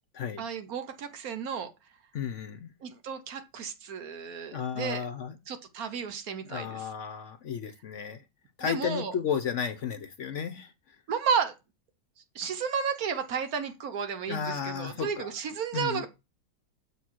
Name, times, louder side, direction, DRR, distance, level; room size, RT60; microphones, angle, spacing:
voice 1, 0.4-1.7 2.8-5.0 5.5-6.9 8.6-9.1 11.1-11.5 12.3-16.1, right 6 dB, 65° right, 1.3 m, -32 dB
voice 2, 2.1-2.7 4.5-5.4 6.5-8.2 8.6-11.0 14.3-15.3 15.7-16.1, left 7 dB, 60° left, 0.9 m, -33 dB
7.1 x 4.4 x 4.5 m
omnidirectional pair, 1.7 m